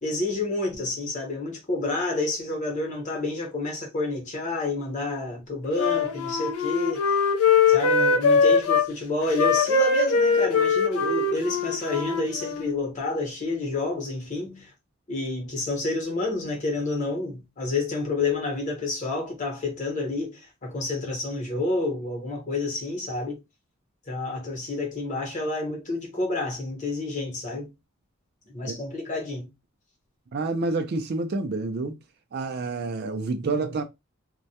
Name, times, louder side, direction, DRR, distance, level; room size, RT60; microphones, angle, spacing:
voice 1, 0.0-7.2 7.7-14.7 15.1-23.4 24.1-27.7 28.5-29.5, left 2 dB, 35° left, 0.9 m, -29 dB
Wind instrument woodwind instrument, 5.7-8.9 9.3-12.8, left 5 dB, 80° left, 0.5 m, -22 dB
voice 2, 30.3-32.0 32.3-33.8, right 3 dB, 45° right, 0.3 m, -28 dB
2.2 x 2.1 x 2.7 m
head